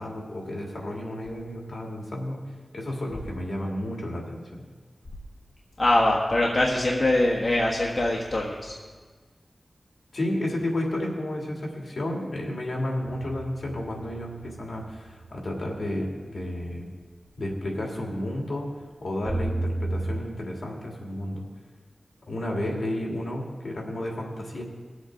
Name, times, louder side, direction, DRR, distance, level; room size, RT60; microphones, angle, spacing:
voice 1, 0.0-2.4 2.7-4.6 10.1-16.9 17.4-21.4 22.3-24.6, left 1 dB, 75° left, -1 dB, 2.4 m, -32 dB
voice 2, 5.8-8.7, left 1 dB, 55° left, -4 dB, 1.5 m, -23 dB
sound 1, 13.0-17.5 17.9-18.0 18.4-18.6 19.3-20.2, right 2 dB, 20° right, 1.0 m, -33 dB
20.0 x 8.0 x 3.8 m, 1.4 s
wide cardioid pair, 90°, 0 cm